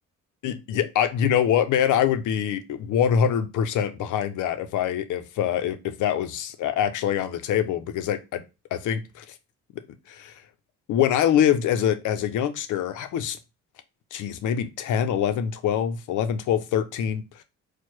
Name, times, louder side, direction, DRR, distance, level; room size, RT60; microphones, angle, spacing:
voice 1, 0.4-8.4 8.7-9.2 10.1-10.3 10.9-13.4 14.1-17.4, left 9 dB, 80° left, 0.7 m, -24 dB
4.6 x 2.3 x 4.3 m
cardioid pair, 90°, 30 cm